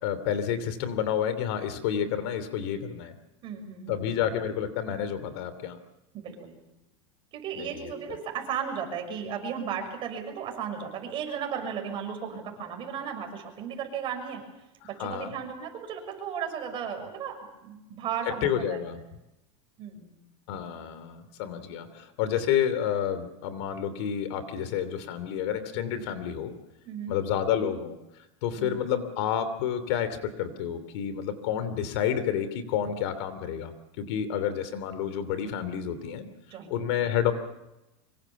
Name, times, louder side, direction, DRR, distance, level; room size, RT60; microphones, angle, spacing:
voice 1, 0.0-3.1 3.9-5.8 7.6-8.2 15.0-15.3 18.4-19.0 20.5-26.6 27.1-28.0 28.4-33.7 34.0-36.3 36.7-37.3, left 9 dB, 65° left, 12 dB, 2.9 m, -29 dB
voice 2, 3.4-4.2 6.1-6.6 7.3-14.4 14.8-18.8 19.8-20.1 26.8-27.1 28.6-28.8 36.4-37.0, right 7 dB, 35° right, 4 dB, 6.5 m, -35 dB
25.5 x 23.5 x 7.3 m, 0.94 s
supercardioid pair, 150°, 15 cm